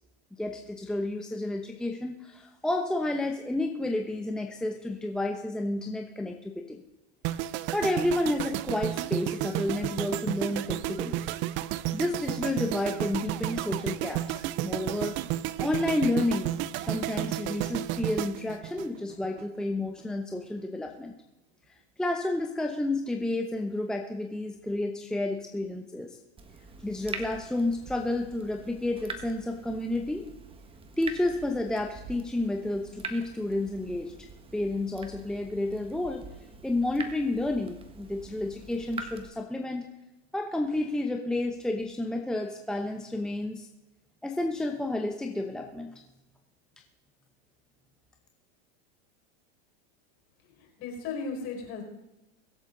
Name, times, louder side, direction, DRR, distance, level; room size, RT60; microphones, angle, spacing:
voice 1, 0.3-6.8 7.7-11.3 11.9-15.2 15.6-21.1 21.7-26.2 26.8-30.3 31.0-34.1 34.5-36.2 36.6-39.8 40.3-43.7 44.2-46.0, left 2 dB, ahead, 3 dB, 0.9 m, -31 dB
sound 1, 7.2-19.4 19.7-20.0, right 14 dB, 35° right, 0.6 m, -32 dB
Water tap faucet / Drip, 26.4-39.3, right 4 dB, 15° right, 1.5 m, -44 dB
voice 2, 50.5-51.8, left 4 dB, 45° left, 2 dB, 5.3 m, -36 dB
23.5 x 8.3 x 3.9 m, 0.98 s
supercardioid pair, 140°, 32 cm